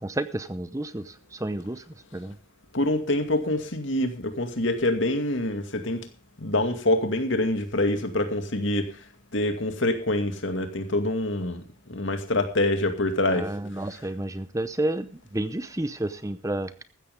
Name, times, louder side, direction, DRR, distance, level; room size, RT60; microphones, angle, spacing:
voice 1, 0.0-1.8 2.1-2.4 13.3-16.7, right 1 dB, 15° right, 0.7 m, -30 dB
voice 2, 2.7-6.1 6.4-9.0 9.3-13.5 13.9-14.0, left 1 dB, 65° left, 2.3 m, -26 dB
15.5 x 13.0 x 3.7 m
head